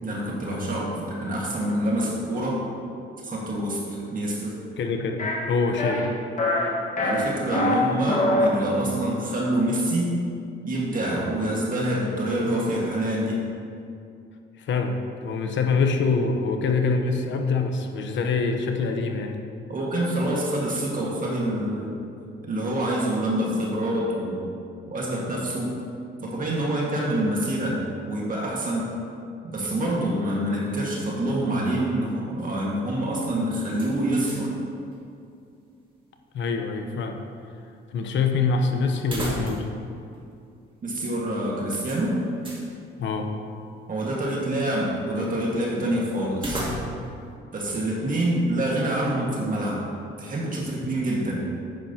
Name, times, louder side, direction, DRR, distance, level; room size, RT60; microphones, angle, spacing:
voice 1, 0.0-2.6 3.2-4.6 6.9-10.2 10.6-13.4 19.7-22.0 22.4-24.4 24.9-25.7 26.2-28.9 29.5-34.5 40.8-42.2 43.9-46.7 47.5-49.9 50.2-51.4, right 1 dB, 45° right, -4 dB, 1.9 m, -26 dB
voice 2, 4.8-6.1 14.6-19.4 36.3-37.2 37.9-39.7 43.0-43.3, left 4 dB, 70° left, 4 dB, 1.0 m, -25 dB
sound 1, 5.2-5.3 5.8-6.1 6.4-6.7 7.0-7.7 8.1-8.5, left 1 dB, 40° left, 1.7 m, -23 dB
sound 2, 33.7-34.6 34.9-35.0 39.0-39.8 40.1-40.2 41.8-42.7 46.3-47.2, equal, 25° right, 2.2 m, -33 dB
10.5 x 9.3 x 3.0 m, 2.5 s
cardioid pair, 90°, 20 cm